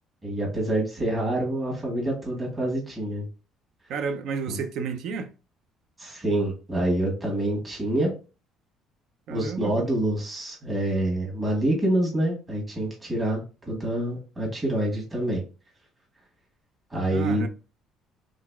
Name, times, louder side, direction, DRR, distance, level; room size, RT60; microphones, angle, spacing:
voice 1, 0.2-3.3 4.5-4.6 6.0-8.1 9.3-15.4 16.9-17.5, right 1 dB, 20° right, 1.4 m, -26 dB
voice 2, 3.9-5.3 9.3-9.9 17.1-17.5, right 5 dB, 65° right, 0.5 m, -31 dB
3.8 x 3.3 x 2.3 m
cardioid pair, 135°, 0 cm